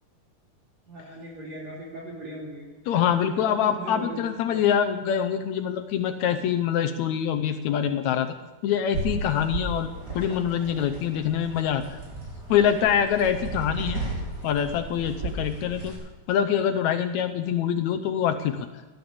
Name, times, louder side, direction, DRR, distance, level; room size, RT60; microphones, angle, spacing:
voice 1, 0.9-2.7 3.1-4.6, right 1 dB, 50° right, -3 dB, 4.1 m, -38 dB
voice 2, 2.9-8.4 8.6-9.9 10.2-12.0 12.5-14.0 14.4-15.9 16.3-18.7, left 9 dB, 75° left, 7 dB, 1.8 m, -25 dB
sound 1, 8.9-15.9, right 3 dB, 30° right, 5.3 m, -35 dB
16.5 x 11.5 x 7.0 m, 1.2 s
omnidirectional pair, 3.9 m